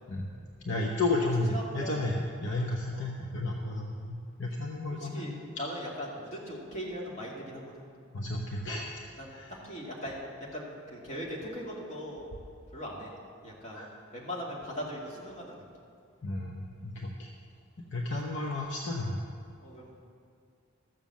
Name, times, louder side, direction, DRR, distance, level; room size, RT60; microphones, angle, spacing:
voice 1, 0.6-5.3 8.1-8.9 9.3-9.5 13.7-13.9 16.2-17.3 17.8-19.2, left 2 dB, 55° left, -1 dB, 0.9 m, -32 dB
voice 2, 1.5-2.1 2.9-3.1 4.9-7.8 9.2-9.3 9.6-10.2 10.5-12.3 12.7-13.1 13.4-15.6 19.6-20.0, equal, 35° left, -4 dB, 2.4 m, -40 dB
13.5 x 7.3 x 7.3 m, 2.3 s
head